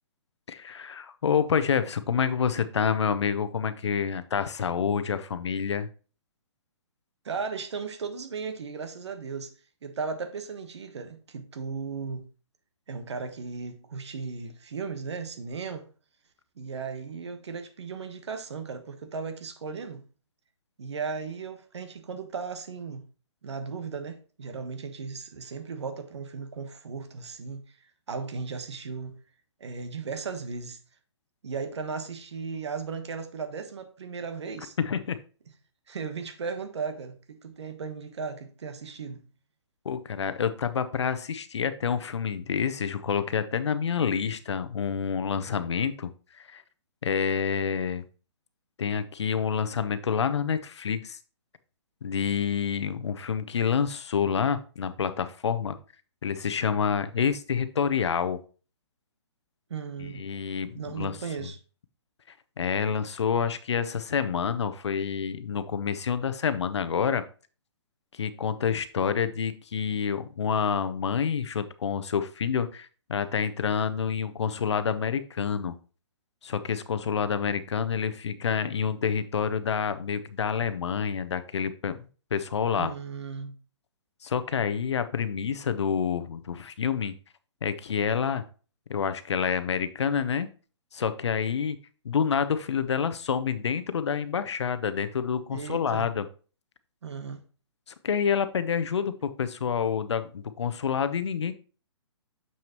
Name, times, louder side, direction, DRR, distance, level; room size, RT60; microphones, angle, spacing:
voice 1, 0.5-5.9 34.8-35.2 39.8-46.6 47.0-48.0 48.8-51.2 52.0-55.8 56.2-58.4 60.0-61.2 62.6-67.2 68.1-75.7 76.4-82.9 84.2-87.2 87.6-88.4 88.9-90.5 90.9-91.8 92.0-96.2 98.0-101.6, left 7 dB, 70° left, 0.8 m, -28 dB
voice 2, 7.2-9.5 9.8-12.3 12.9-15.9 16.6-20.0 20.8-23.0 23.4-27.8 28.1-29.2 29.6-30.8 31.4-34.8 35.9-39.2 59.7-60.2 60.7-61.6 82.8-83.5 95.5-96.1 97.0-97.4, right 5 dB, 65° right, 1.3 m, -36 dB
7.1 x 6.2 x 3.0 m
figure-of-eight pair, 135°, 15 cm